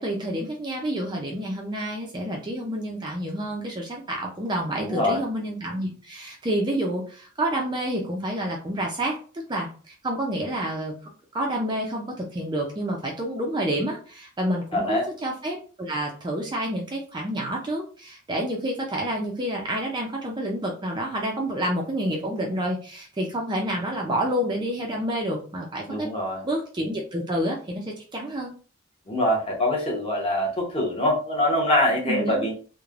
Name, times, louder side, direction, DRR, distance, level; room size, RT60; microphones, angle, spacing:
voice 1, 0.0-9.2 9.5-26.1 26.4-28.5 32.0-32.5, right 1 dB, 20° right, -1 dB, 0.4 m, -29 dB
voice 2, 4.8-5.2 14.7-15.1 25.9-26.4 29.1-32.5, left 1 dB, 25° left, -1 dB, 0.8 m, -24 dB
3.1 x 2.1 x 2.4 m, 0.39 s
head